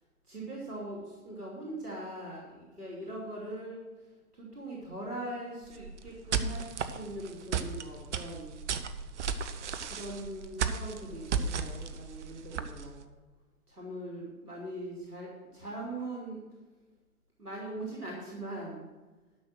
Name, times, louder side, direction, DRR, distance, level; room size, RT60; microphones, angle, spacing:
voice 1, 0.3-3.8 4.3-8.6 9.8-13.1 13.7-16.4 17.4-18.9, right 1 dB, 85° right, -4 dB, 2.8 m, -41 dB
sound 1, 5.7-13.0, right 6 dB, 50° right, 0.9 m, -34 dB
12.5 x 6.3 x 6.2 m, 1.2 s
figure-of-eight pair, 115°, 45 cm